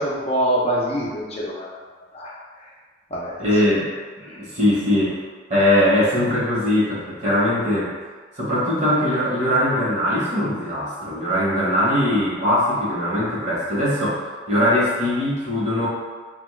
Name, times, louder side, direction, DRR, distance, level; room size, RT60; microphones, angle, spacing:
voice 1, 0.0-1.7 2.1-2.3 3.1-3.6 4.2-4.4, equal, 35° left, -5 dB, 0.6 m, -25 dB
voice 2, 3.4-3.9 4.3-5.2 5.5-7.9 8.4-15.9, left 1 dB, 40° right, -8 dB, 1.0 m, -21 dB
2.9 x 2.2 x 3.1 m, 1.4 s
head